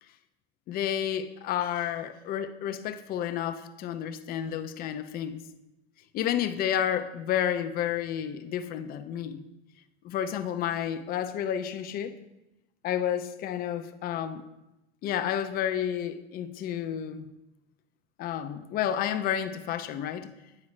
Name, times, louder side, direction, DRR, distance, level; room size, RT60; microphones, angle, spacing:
voice 1, 0.7-5.4 6.1-9.4 10.0-12.1 12.8-14.4 15.0-17.3 18.2-20.3, left 10 dB, 25° left, 9 dB, 0.4 m, -31 dB
8.5 x 4.7 x 3.2 m, 0.95 s
hypercardioid pair, 110°, 34 cm